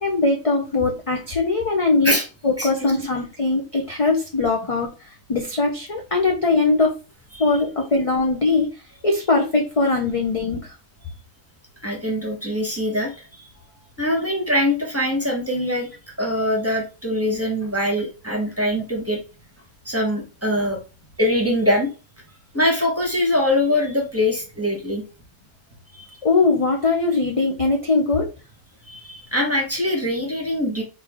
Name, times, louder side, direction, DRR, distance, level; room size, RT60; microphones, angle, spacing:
voice 1, 0.0-2.1 2.4-4.9 5.3-6.9 7.4-8.7 9.0-10.7 26.2-28.3, left 3 dB, 35° left, 1 dB, 0.6 m, -21 dB
voice 2, 2.6-3.1 7.3-7.6 11.8-13.5 14.0-15.9 16.2-19.2 19.8-20.8 21.2-21.9 22.5-25.0 25.9-26.1 28.9-30.8, left 1 dB, 10° right, 1 dB, 1.2 m, -23 dB
4.2 x 3.4 x 3.5 m, 0.31 s
omnidirectional pair, 1.4 m